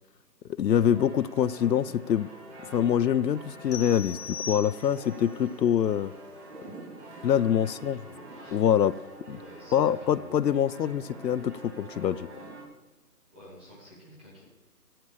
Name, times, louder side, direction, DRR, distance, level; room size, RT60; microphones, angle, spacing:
voice 1, 0.5-2.3 2.7-6.1 7.2-8.0 8.5-9.0 9.3-9.4 9.7-12.3, left 9 dB, 85° left, 17 dB, 0.6 m, -25 dB
sound 1, 0.7-12.6, right 1 dB, 40° right, 3.7 m, -46 dB
sound 2, 3.7-5.2, left 5 dB, 65° left, 1.8 m, -39 dB
voice 2, 7.6-8.3 9.4-10.5 13.3-14.4, left 1 dB, 5° right, -6 dB, 1.0 m, -49 dB
11.0 x 7.6 x 6.9 m, 1.1 s
hypercardioid pair, 165°, 49 cm